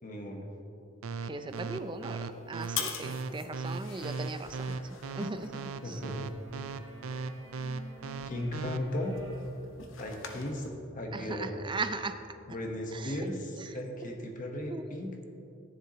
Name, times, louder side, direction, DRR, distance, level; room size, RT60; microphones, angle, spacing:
voice 1, 0.0-0.4 5.8-6.3 8.2-9.1 10.0-10.6 10.9-11.6 12.5-15.1, left 1 dB, 40° left, 1 dB, 1.4 m, -36 dB
sound 1, 1.0-8.8, right 4 dB, 90° right, 0.5 m, -37 dB
voice 2, 1.2-4.8 5.2-5.5 5.9-6.0 11.1-12.2 12.9-13.3 14.7-14.8, right 3 dB, 25° right, 9 dB, 0.5 m, -38 dB
sound 2, 1.5-10.7, left 6 dB, 65° left, 1.0 m, -44 dB
sound 3, 5.6-5.9 6.1-12.8, right 1 dB, 55° right, 2.6 m, -55 dB
14.5 x 10.0 x 3.1 m, 2.8 s
head